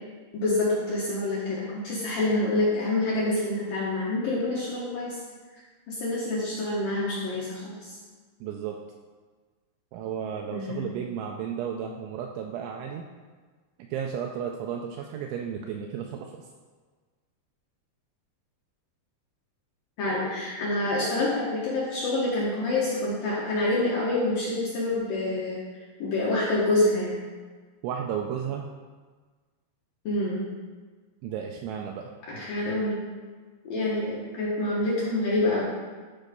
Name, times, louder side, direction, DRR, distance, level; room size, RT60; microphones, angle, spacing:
voice 1, 0.3-5.2 5.9-8.0 10.5-10.8 20.0-25.6 26.0-27.2 30.0-30.4 32.3-33.0 33.6-35.6, left 2 dB, 65° left, -7 dB, 2.3 m, -27 dB
voice 2, 8.4-8.8 9.9-13.0 13.9-16.3 27.8-28.7 31.2-32.1, right 8 dB, 80° right, 2 dB, 2.7 m, -33 dB
13.5 x 4.7 x 5.3 m, 1.4 s
omnidirectional pair, 5.9 m